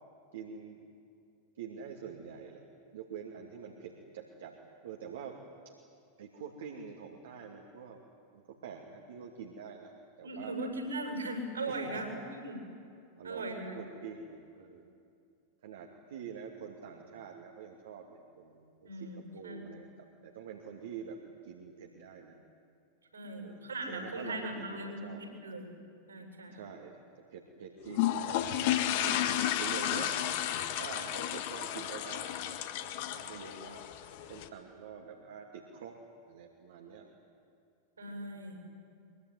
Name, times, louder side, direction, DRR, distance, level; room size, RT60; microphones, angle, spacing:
voice 1, 0.3-0.9 1.6-2.6 2.9-4.5 4.8-5.4 5.6-5.7 6.2-8.0 8.3-10.7 11.7-12.0 13.2-14.9 15.6-22.4 23.3-25.2 26.5-27.0 27.3-29.2 29.6-30.2 30.8-32.4 33.1-33.9 34.2-36.0 36.3-37.1 38.0-38.3, right 7 dB, 60° right, 1 dB, 2.5 m, -46 dB
voice 2, 10.2-12.1 12.4-12.6 13.2-13.8 18.8-19.7 23.1-25.7 26.1-26.6 38.0-38.6, right 1 dB, 75° right, 4 dB, 7.3 m, -39 dB
sound 1, 27.9-34.5, left 11 dB, 50° left, 1.7 m, -32 dB
23.5 x 23.0 x 9.6 m, 2.4 s
figure-of-eight pair, 90°, 0 cm